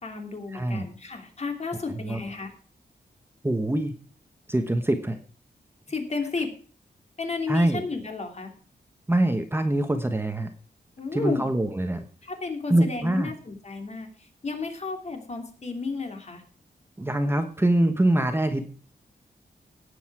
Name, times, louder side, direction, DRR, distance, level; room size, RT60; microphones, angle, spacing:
voice 1, 0.0-2.5 5.9-6.5 7.2-8.5 11.0-11.5 12.2-16.4, left 4 dB, 40° left, 4 dB, 3.0 m, -33 dB
voice 2, 0.5-0.9 2.0-2.2 3.4-3.9 4.5-5.2 7.5-7.8 9.1-10.5 11.1-12.0 12.7-13.3 17.0-18.7, right 1 dB, 15° right, 7 dB, 1.2 m, -24 dB
18.0 x 8.2 x 4.8 m, 0.41 s
wide cardioid pair, 170°, 17 cm